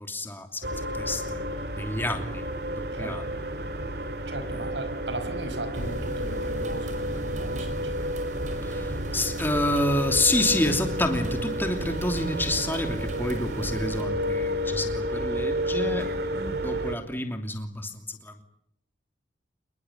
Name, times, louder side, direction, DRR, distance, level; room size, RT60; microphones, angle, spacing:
voice 1, 0.0-1.4 1.7-2.4 2.8-3.2 4.5-4.7 8.6-16.2 16.6-18.4, left 1 dB, 10° left, 5 dB, 2.9 m, -28 dB
sound 1, 0.6-17.0, equal, 60° right, 2.6 m, -31 dB
voice 2, 4.3-7.9, right 2 dB, 75° right, 10 dB, 5.5 m, -37 dB
sound 2, 5.7-14.0, equal, 40° right, 5.4 m, -39 dB
27.0 x 21.5 x 9.3 m, 0.78 s
head